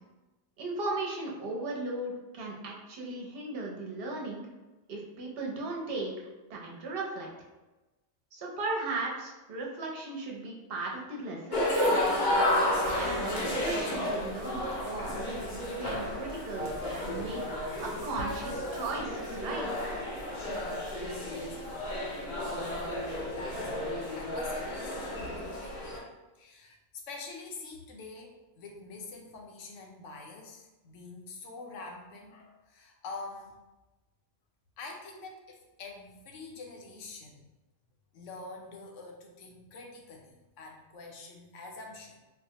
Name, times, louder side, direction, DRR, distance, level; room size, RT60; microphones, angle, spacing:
voice 1, 0.6-4.4 4.9-7.3 8.3-12.0 13.0-15.4 15.8-17.4 17.8-19.7, right 2 dB, 55° right, -1 dB, 0.9 m, -36 dB
sound 1, 11.5-26.0, left 1 dB, 45° left, 0.7 m, -32 dB
voice 2, 21.1-21.6 22.2-26.0 26.3-26.8 27.1-33.5 34.8-37.5 38.1-42.2, left 3 dB, 75° left, 1 dB, 1.0 m, -46 dB
4.1 x 2.2 x 2.8 m, 1.1 s
omnidirectional pair, 1.3 m